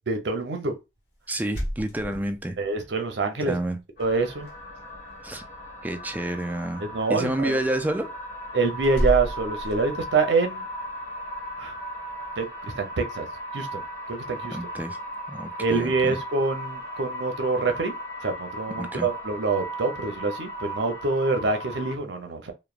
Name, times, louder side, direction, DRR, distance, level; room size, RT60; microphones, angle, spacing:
voice 1, 0.1-0.8 2.6-3.5 4.0-4.5 6.8-7.6 8.5-10.7 11.6-11.7 12.4-13.3 13.5-14.6 15.6-17.9 18.2-22.5, right 4 dB, 85° right, 0.6 m, -26 dB
sound 1, 1.3-2.9 4.0-4.6 4.8-5.3 8.8-10.2, equal, 80° left, 1.2 m, -31 dB
voice 2, 1.3-2.6 3.4-3.8 5.2-5.4 5.8-6.8 7.1-8.1 14.5-15.0 15.3-16.2 18.7-19.1, right 1 dB, 10° right, 0.3 m, -29 dB
sound 2, 4.0-21.9, equal, 55° left, 1.1 m, -37 dB
3.1 x 2.1 x 2.3 m
head